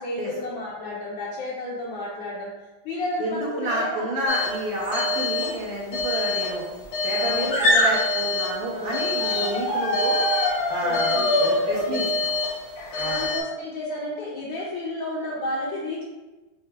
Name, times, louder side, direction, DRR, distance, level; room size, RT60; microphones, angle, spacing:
voice 1, 0.0-2.5 2.8-4.1 5.0-5.1 7.2-7.8 8.7-9.2 10.8-12.1 13.0-16.0, left 1 dB, 70° left, -5 dB, 1.4 m, -32 dB
voice 2, 3.2-6.6 7.0-10.2 10.7-12.3 13.0-13.3, right 1 dB, 55° right, -4 dB, 1.5 m, -29 dB
sound 1, 4.3-4.6 4.9-5.6 5.9-8.6 8.9-13.4, left 1 dB, 90° left, 1.9 m, -24 dB
5.6 x 2.6 x 3.4 m, 1.1 s
omnidirectional pair, 2.3 m